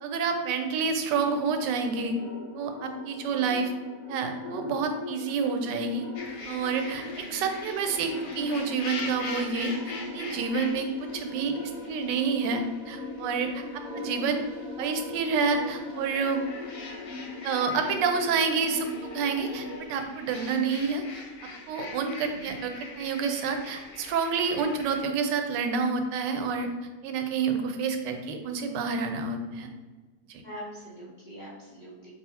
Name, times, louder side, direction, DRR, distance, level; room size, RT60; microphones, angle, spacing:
voice 1, 0.0-2.2 2.5-3.7 4.1-6.0 6.5-14.4 14.8-16.4 17.4-18.9 19.1-21.0 21.7-26.7 27.0-29.7 30.3-30.4, right 5 dB, 85° right, 5 dB, 1.2 m, -28 dB
sound 1, 1.1-19.8, left 3 dB, 25° left, 1.0 m, -40 dB
sound 2, 6.2-25.0, left 3 dB, 85° left, 1.3 m, -43 dB
voice 2, 30.4-32.1, equal, 65° left, -7 dB, 0.4 m, -44 dB
3.7 x 2.6 x 4.1 m, 1.3 s
omnidirectional pair, 1.8 m